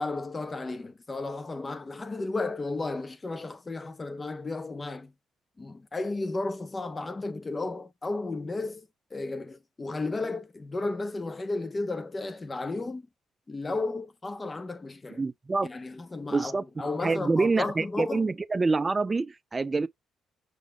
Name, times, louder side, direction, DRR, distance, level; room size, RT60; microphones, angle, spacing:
voice 1, 0.0-5.1 5.6-13.1 13.5-15.2 15.6-18.3, left 3 dB, 25° left, 0.7 m, -33 dB
voice 2, 15.1-15.7 16.3-19.9, right 3 dB, 25° right, 0.3 m, -27 dB
5.8 x 3.7 x 2.3 m
cardioid pair, 90°, 0 cm